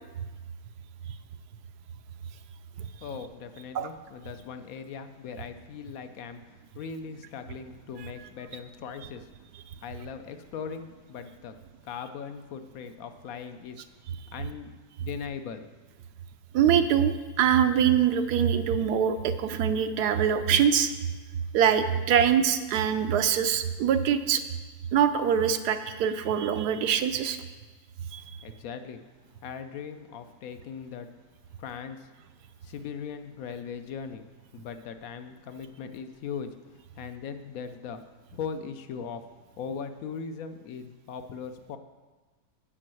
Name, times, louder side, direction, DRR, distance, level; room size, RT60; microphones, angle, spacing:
voice 1, 3.0-9.3 9.8-11.5 11.8-13.8 14.3-14.7 15.0-15.7 28.4-29.0 29.4-31.1 31.6-32.1 32.6-34.2 34.5-38.0 38.3-39.2 39.6-41.8, left 6 dB, 65° left, 9 dB, 1.0 m, -39 dB
voice 2, 16.5-20.9 21.5-24.4 24.9-27.4 28.1-28.2, right 8 dB, 80° right, 9 dB, 1.1 m, -24 dB
8.5 x 5.3 x 7.6 m, 1.3 s
omnidirectional pair, 1.7 m